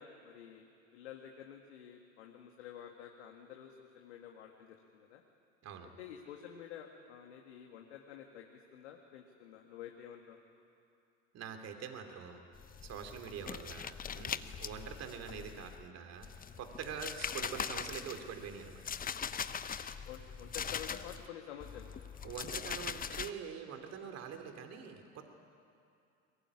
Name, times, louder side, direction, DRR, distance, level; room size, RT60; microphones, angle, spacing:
voice 1, 0.0-5.2 6.0-10.4 15.5-15.6 20.0-21.9, left 9 dB, 75° left, 2 dB, 2.1 m, -50 dB
voice 2, 11.3-12.4 12.8-16.3 16.6-18.8 22.2-25.3, right 7 dB, 45° right, 6 dB, 3.1 m, -45 dB
sound 1, 12.6-15.9 16.2-21.3 21.6-23.3, left 7 dB, 25° left, 1.0 m, -41 dB
22.5 x 21.5 x 9.9 m, 2.5 s
hypercardioid pair, 75°, 34 cm